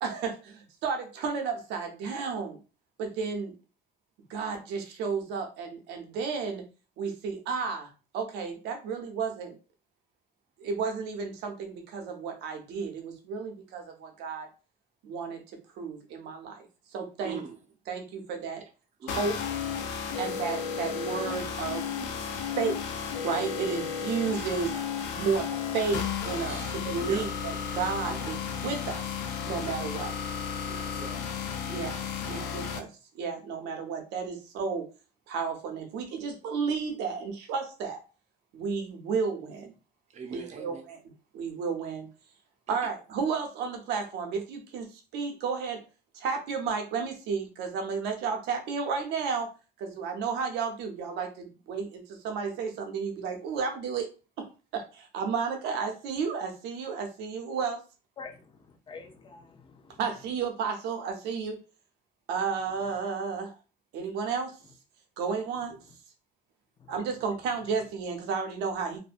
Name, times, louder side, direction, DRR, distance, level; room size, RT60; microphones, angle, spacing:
voice 1, 0.0-2.6 3.0-3.5 4.3-6.6 7.0-9.6 10.6-14.5 15.0-15.4 15.8-16.7 16.9-17.4 17.9-18.6 19.1-19.4 20.2-21.9 22.6-24.8 25.2-25.5 25.7-26.6 26.8-29.0 29.4-30.1 31.7-31.9 32.3-32.9 33.1-34.9 35.3-38.0 38.5-39.7 40.3-41.0 41.3-42.1 42.7-45.8 46.1-49.5 49.8-54.1 54.4-54.5 54.7-57.8 60.0-61.6 62.3-63.6 63.9-64.5 65.2-65.8 66.9-69.0, right 5 dB, 90° right, 4 dB, 0.7 m, -32 dB
voice 2, 17.2-17.5 19.0-19.3 20.1-20.2 21.9-22.5 24.7-24.8 25.4-25.6 26.4-27.3 28.0-28.3 29.5-29.6 30.6-31.3 31.7-31.9 32.3-32.6 40.1-40.8, right 6 dB, 45° right, 4 dB, 0.6 m, -43 dB
sound 1, 19.1-32.8, left 7 dB, 85° left, 0.5 m, -33 dB
voice 3, 58.2-60.0 66.8-67.1, left 4 dB, 30° left, 5 dB, 0.5 m, -47 dB
2.4 x 2.1 x 2.5 m, 0.33 s
cardioid pair, 110°, 17 cm